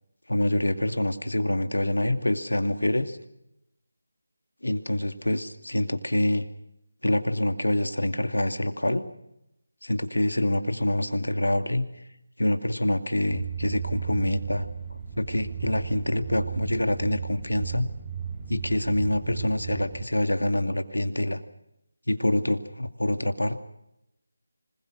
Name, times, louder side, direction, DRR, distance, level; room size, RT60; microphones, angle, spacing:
voice 1, 0.3-3.2 4.6-6.4 7.0-9.0 9.8-11.9 12.4-14.7 15.2-17.9 18.5-21.4 22.1-23.6, left 1 dB, 85° left, 9 dB, 2.4 m, -26 dB
sound 1, 13.3-20.0, right 7 dB, 20° right, 3.5 m, -35 dB
26.0 x 20.5 x 6.3 m, 0.83 s
figure-of-eight pair, 160°, 0 cm